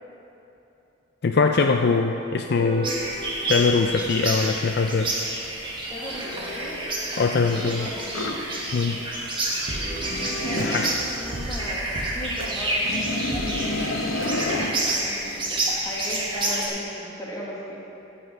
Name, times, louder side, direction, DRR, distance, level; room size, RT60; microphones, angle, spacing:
voice 1, 1.2-2.9 3.5-5.1 7.2-7.9 8.7-9.0 10.6-10.9, left 4 dB, 50° left, 4 dB, 0.4 m, -22 dB
sound 1, 2.5-5.2 6.1-9.1 9.3-9.4 9.7-14.7, right 1 dB, 50° right, 1.3 m, -37 dB
sound 2, 2.8-16.7, right 1 dB, 25° right, 1.4 m, -29 dB
voice 2, 5.9-6.8 7.3-8.1 10.4-14.1 14.8-17.8, left 1 dB, 20° left, -4 dB, 1.6 m, -37 dB
sound 3, 8.1-8.4 9.9-11.0 12.8-14.7, left 2 dB, 80° left, 0.8 m, -29 dB
15.5 x 5.6 x 5.6 m, 2.9 s
head